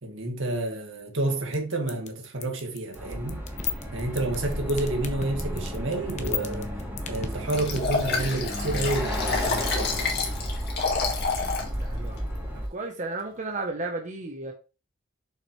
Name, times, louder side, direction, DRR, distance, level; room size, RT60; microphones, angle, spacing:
voice 1, 0.0-3.4 3.9-6.7 7.1-10.3, right 2 dB, 75° right, 2.0 m, -30 dB
sound 1, 1.5-7.8, left 8 dB, 35° left, 0.9 m, -31 dB
sound 2, 2.9-12.7, equal, 10° right, 2.7 m, -32 dB
Liquid, 7.5-11.7 12.2-12.3, left 4 dB, 55° left, 2.0 m, -29 dB
voice 2, 11.6-12.2 12.5-14.5, right 2 dB, 40° right, 1.1 m, -34 dB
6.8 x 5.8 x 3.3 m
head